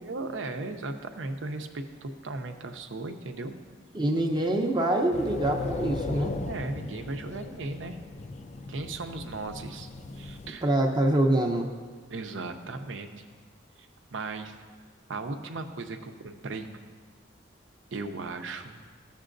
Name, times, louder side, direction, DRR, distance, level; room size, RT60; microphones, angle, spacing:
voice 1, 0.0-3.6 6.5-8.0 8.7-9.9 10.2-10.7 12.1-13.3 14.1-14.6 15.1-16.8 17.9-18.8, right 3 dB, 85° right, 7 dB, 0.6 m, -36 dB
voice 2, 3.9-6.3 10.6-11.7, right 1 dB, 25° right, 2 dB, 0.6 m, -25 dB
sound 1, 5.1-10.5, left 3 dB, 40° left, 0.4 m, -37 dB
13.5 x 7.3 x 2.6 m, 1.5 s
head